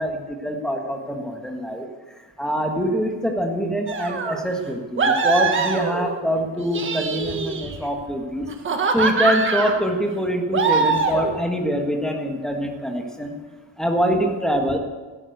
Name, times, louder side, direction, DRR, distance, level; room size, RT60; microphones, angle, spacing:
voice 1, 0.0-1.9 2.4-8.5 8.9-13.3 13.8-14.8, equal, ahead, 3 dB, 1.6 m, -24 dB
sound 1, 3.9-4.4 5.0-6.2 6.6-7.9 8.5-9.8 10.5-11.4, right 4 dB, 30° right, 1.5 m, -23 dB
13.0 x 11.5 x 8.1 m, 1.3 s
cardioid pair, 165°, 43 cm